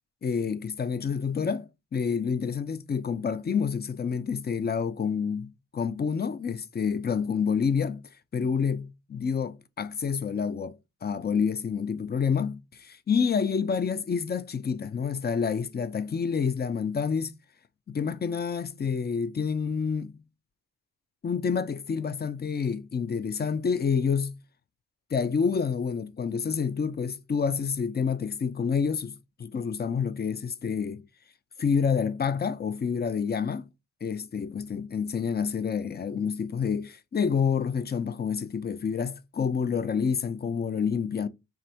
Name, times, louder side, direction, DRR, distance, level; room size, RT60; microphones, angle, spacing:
voice 1, 0.2-8.0 8.3-17.3 17.9-20.2 21.2-24.4 25.1-31.0 31.6-33.7 34.0-41.3, left 6 dB, 25° left, 0.5 m, -28 dB
3.4 x 2.4 x 4.3 m
supercardioid pair, 50°, 40 cm